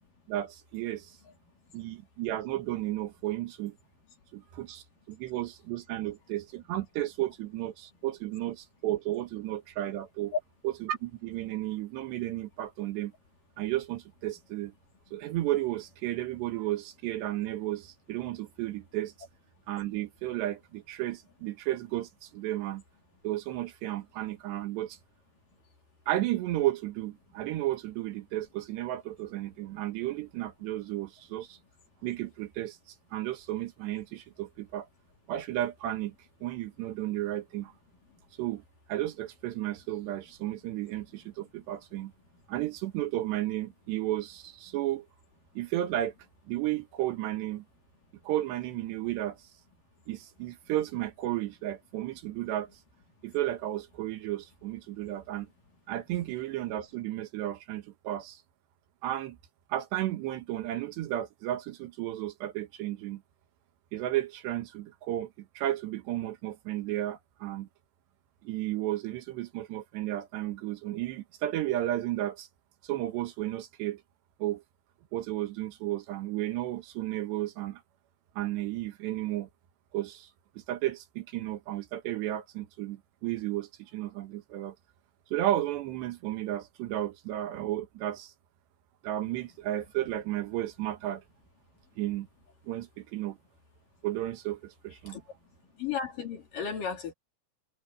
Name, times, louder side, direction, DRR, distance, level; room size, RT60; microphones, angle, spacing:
voice 1, 0.3-1.2 1.7-3.8 4.3-10.3 10.6-13.1 13.6-14.7 15.1-19.1 19.7-22.8 23.2-25.0 26.1-31.6 32.0-32.8 33.1-34.9 35.3-36.1 36.4-37.7 38.4-38.6 38.9-42.1 42.5-45.1 45.6-46.1 46.5-47.6 48.3-49.4 50.1-52.7 53.2-55.5 55.9-58.4 59.0-59.4 59.7-63.2 63.9-67.7 68.4-72.5 72.8-74.0 74.4-74.6 75.1-77.8 78.4-79.5 79.9-80.3 80.6-84.8 85.3-88.3 89.0-91.2 92.0-92.3 92.7-93.4 94.0-95.2, right 14 dB, 80° right, 3.6 m, -33 dB
voice 2, 95.8-97.1, left 6 dB, 55° left, 4.4 m, -33 dB
omnidirectional pair, 4.9 m